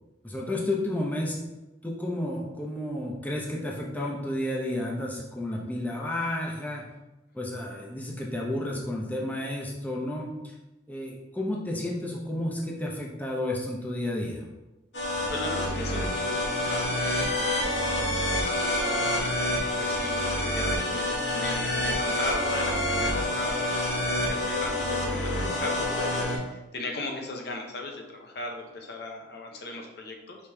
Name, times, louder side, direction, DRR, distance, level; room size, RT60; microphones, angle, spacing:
voice 1, 0.2-1.4 1.8-6.9 7.3-10.4 10.9-14.5, left 1 dB, 10° left, -2 dB, 0.7 m, -31 dB
sound 1, 14.9-26.4, left 1 dB, 85° left, 1.0 m, -27 dB
voice 2, 14.9-30.4, left 2 dB, 65° left, 2 dB, 0.7 m, -38 dB
5.0 x 2.9 x 3.4 m, 1.0 s
head